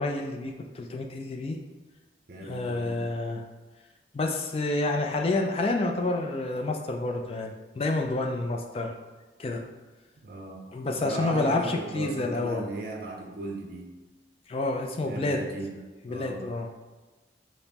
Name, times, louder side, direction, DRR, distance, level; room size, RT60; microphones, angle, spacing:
voice 1, 0.0-1.6 2.4-3.4 4.1-8.9 9.4-9.6 10.7-12.6 14.5-15.4 16.0-16.7, left 2 dB, 30° left, 3 dB, 0.3 m, -29 dB
voice 2, 2.3-3.1 10.2-10.6 11.0-13.9 15.0-15.7 16.1-16.5, right 2 dB, 55° right, 1 dB, 0.5 m, -37 dB
5.1 x 2.0 x 2.8 m, 1.3 s
head